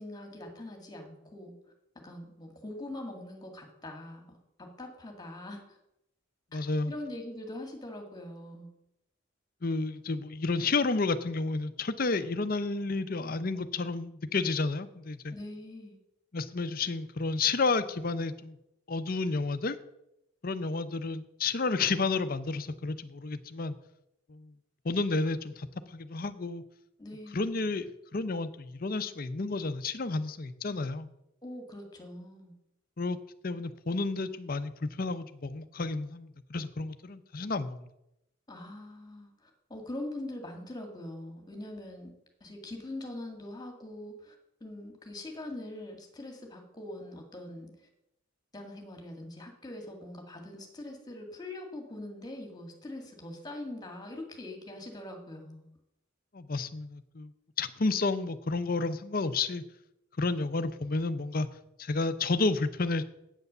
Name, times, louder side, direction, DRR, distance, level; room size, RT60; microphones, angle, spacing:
voice 1, 0.0-1.5 2.0-4.4 4.8-5.6 6.5-6.6 6.8-8.7 15.3-16.0 27.0-27.6 31.4-32.5 38.5-42.1 42.4-44.4 44.6-47.7 48.5-55.6, left 1 dB, 20° left, 3 dB, 1.9 m, -42 dB
voice 2, 6.5-6.9 9.6-15.4 16.3-18.6 18.9-19.8 20.4-23.8 24.3-24.5 24.8-26.6 27.3-31.1 33.0-33.2 33.4-37.9 56.3-57.3 57.6-59.6 60.2-61.5 61.8-63.0, left 3 dB, 45° left, 12 dB, 0.6 m, -31 dB
8.3 x 8.1 x 6.7 m, 0.84 s
head